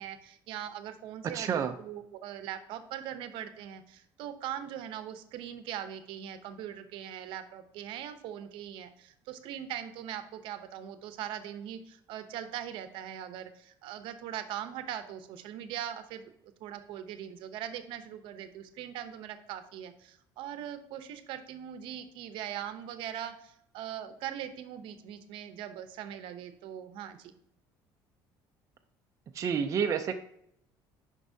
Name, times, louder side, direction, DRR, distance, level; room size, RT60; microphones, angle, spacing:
voice 1, 0.0-16.3 16.6-27.3, right 10 dB, 70° right, 10 dB, 0.8 m, -41 dB
voice 2, 1.3-1.7 29.3-30.1, right 7 dB, 35° right, 5 dB, 0.5 m, -29 dB
9.7 x 5.4 x 2.7 m, 0.72 s
cardioid pair, 130°, 9 cm